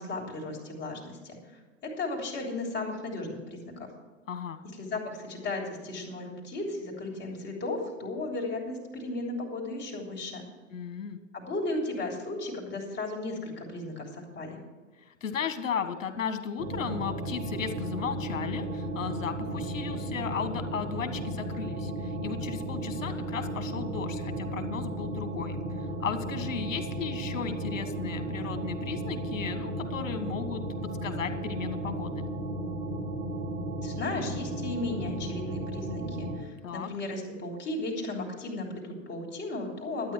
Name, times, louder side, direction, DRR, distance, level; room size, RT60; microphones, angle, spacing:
voice 1, 0.0-3.9 4.8-10.4 11.3-14.6 33.8-40.1, left 2 dB, 30° left, 0 dB, 3.5 m, -35 dB
voice 2, 4.3-4.6 10.7-11.2 15.0-30.6 31.0-32.3 36.6-36.9, left 7 dB, 80° left, 8 dB, 1.6 m, -35 dB
sound 1, 16.6-36.4, right 1 dB, 80° right, 2.4 m, -34 dB
12.5 x 9.3 x 6.0 m, 1.4 s
hypercardioid pair, 115°, 38 cm